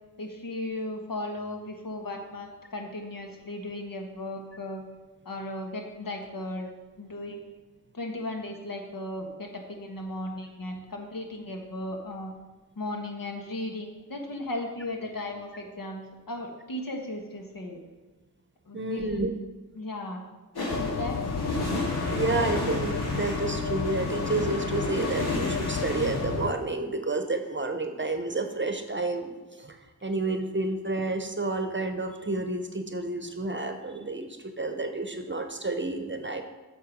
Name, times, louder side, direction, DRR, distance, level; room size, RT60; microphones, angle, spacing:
voice 1, 0.2-4.8 5.2-7.5 7.9-12.3 12.7-17.8 18.7-19.2 19.7-20.2 20.7-21.2 22.4-22.7, left 1 dB, 65° left, 2 dB, 1.4 m, -36 dB
voice 2, 18.7-19.3 22.1-36.4, right 3 dB, 30° right, 6 dB, 0.8 m, -30 dB
sound 1, 20.5-26.4, left 1 dB, 85° left, 2.3 m, -32 dB
sound 2, 20.7-26.5, left 7 dB, 50° left, 0.4 m, -33 dB
7.7 x 6.6 x 5.3 m, 1.2 s
wide cardioid pair, 80°, 37 cm